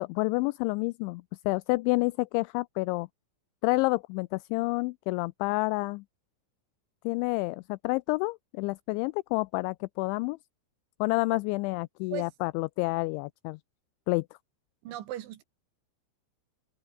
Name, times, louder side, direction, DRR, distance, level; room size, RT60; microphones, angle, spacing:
voice 1, 0.0-3.1 3.6-6.0 7.0-10.4 11.0-13.6 14.1-14.3, left 25 dB, 85° left, 2.7 m, -29 dB
voice 2, 14.8-15.4, right 12 dB, 75° right, 3.8 m, -37 dB
omnidirectional pair, 5.7 m